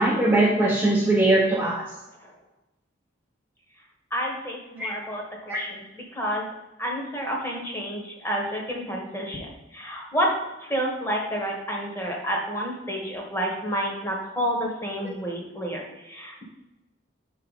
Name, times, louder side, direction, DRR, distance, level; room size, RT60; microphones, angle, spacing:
voice 1, 0.0-1.9 4.8-4.9 5.5-5.6, right 2 dB, 5° right, -5 dB, 0.7 m, -21 dB
voice 2, 4.1-6.5 6.8-16.4, equal, 15° left, -1 dB, 1.2 m, -30 dB
5.8 x 3.9 x 4.9 m, 1.0 s
head